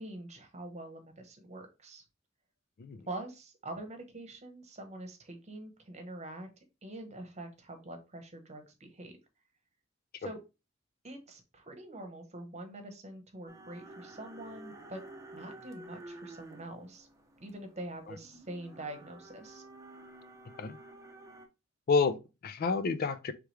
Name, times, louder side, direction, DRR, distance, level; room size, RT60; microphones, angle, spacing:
voice 1, 0.0-2.0 3.1-6.5 6.8-9.2 10.2-10.4 11.0-15.0 15.3-17.1 17.4-19.6, right 1 dB, 35° right, 1.1 m, -45 dB
sound 1, 13.5-21.5, right 2 dB, 15° right, 0.8 m, -51 dB
voice 2, 21.9-23.3, left 4 dB, 50° left, 0.4 m, -29 dB
4.8 x 3.3 x 3.2 m
head